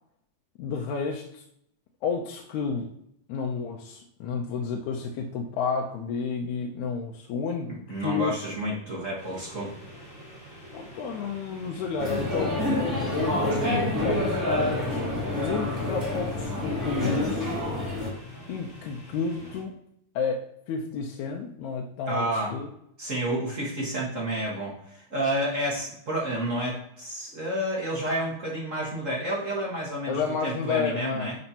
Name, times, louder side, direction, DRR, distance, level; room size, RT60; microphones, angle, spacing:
voice 1, 0.6-1.4 2.0-2.9 3.3-8.3 10.7-15.1 15.4-17.5 18.5-19.8 20.2-22.7 30.1-31.3, left 5 dB, 80° left, 1 dB, 2.0 m, -31 dB
voice 2, 7.7-9.7 13.6-13.8 22.1-22.5 23.0-31.4, right 1 dB, 40° right, -5 dB, 1.2 m, -30 dB
sound 1, 9.2-19.6, equal, 20° left, 2.2 m, -46 dB
sound 2, 12.0-18.1, left 1 dB, 10° right, 1.5 m, -28 dB
11.0 x 4.4 x 2.9 m, 0.72 s
omnidirectional pair, 3.4 m